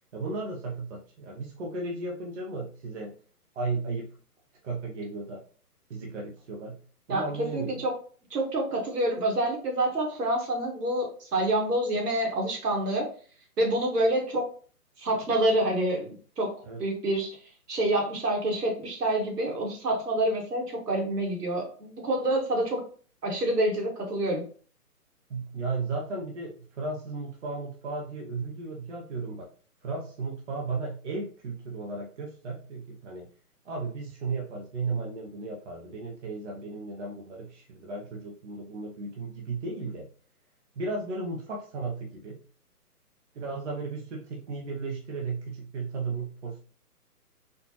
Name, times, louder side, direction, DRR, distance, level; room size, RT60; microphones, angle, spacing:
voice 1, 0.1-3.1 3.5-4.1 4.6-5.4 5.9-6.8 7.1-7.7 16.6-16.8 25.3-29.5 29.8-33.3 33.6-40.1 40.7-42.4 43.3-46.6, right 3 dB, 50° right, -1 dB, 0.9 m, -35 dB
voice 2, 7.1-7.9 8.3-13.1 13.6-14.5 15.0-16.5 16.8-17.4 17.7-22.8 23.2-24.4, right 1 dB, 80° right, 0 dB, 1.8 m, -27 dB
4.3 x 2.6 x 3.0 m, 0.41 s
hypercardioid pair, 150°, 46 cm